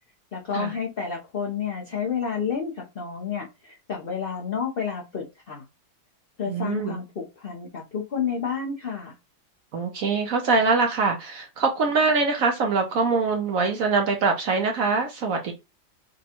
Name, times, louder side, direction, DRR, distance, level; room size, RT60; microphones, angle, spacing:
voice 1, 0.3-5.6 6.4-9.1, left 6 dB, 45° left, 0.7 m, -30 dB
voice 2, 6.5-7.0 9.7-15.5, right 4 dB, 65° right, 0.9 m, -23 dB
5.1 x 2.3 x 2.9 m
omnidirectional pair, 2.0 m